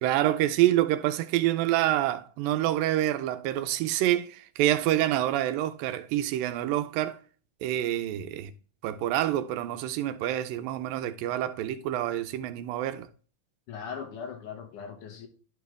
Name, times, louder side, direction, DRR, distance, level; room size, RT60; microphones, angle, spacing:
voice 1, 0.0-7.2 7.6-8.5 8.8-13.1, right 13 dB, 85° right, 2.4 m, -27 dB
voice 2, 13.7-15.3, left 6 dB, 70° left, 2.6 m, -39 dB
11.5 x 4.5 x 3.4 m
omnidirectional pair, 4.0 m